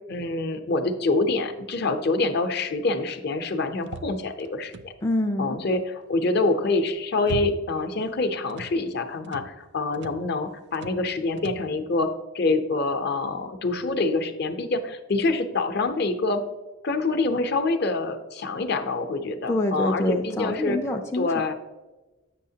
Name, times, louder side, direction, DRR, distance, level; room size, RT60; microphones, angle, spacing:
voice 1, 0.1-4.9 5.4-16.4 16.8-20.8 21.1-21.5, left 3 dB, 55° left, 7 dB, 0.7 m, -26 dB
sound 1, 3.8-5.2 6.7-7.9 8.2-8.8 9.2-9.5 9.9-10.3 10.7-11.1 11.4-11.7, right 4 dB, 55° right, 0.4 m, -38 dB
voice 2, 5.0-5.6 19.5-21.3, left 1 dB, 15° left, 2 dB, 0.4 m, -26 dB
8.3 x 6.4 x 2.8 m, 1.1 s
head